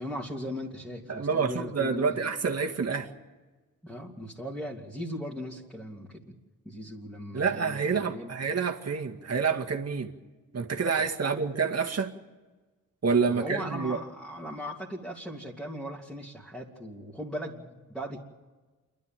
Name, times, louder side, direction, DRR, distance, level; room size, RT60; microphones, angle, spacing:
voice 1, 0.0-2.1 3.8-6.4 6.6-8.3 11.2-11.4 13.3-18.2, equal, ahead, 2.9 m, -38 dB
voice 2, 1.1-3.1 7.3-10.1 10.5-12.1 13.0-14.0, right 5 dB, 45° right, 2.0 m, -28 dB
28.0 x 12.0 x 9.1 m
cardioid pair, 80°, 35 cm